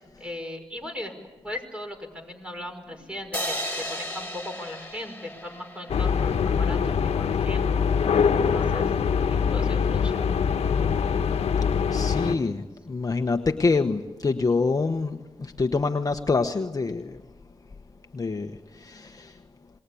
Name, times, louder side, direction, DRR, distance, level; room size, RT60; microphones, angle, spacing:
voice 1, 0.2-1.1 1.4-7.8 8.4-9.0 9.3-10.2, left 1 dB, 10° right, 4 dB, 5.7 m, -38 dB
sound 1, 3.3-6.6, equal, 15° left, 5.7 m, -34 dB
sound 2, 5.9-12.4, left 6 dB, 75° left, 1.3 m, -23 dB
voice 2, 11.9-17.3 17.7-17.8 18.1-19.5, left 4 dB, 35° left, 6 dB, 1.2 m, -26 dB
26.5 x 21.0 x 8.5 m, 1.2 s
cardioid pair, 80°, 11 cm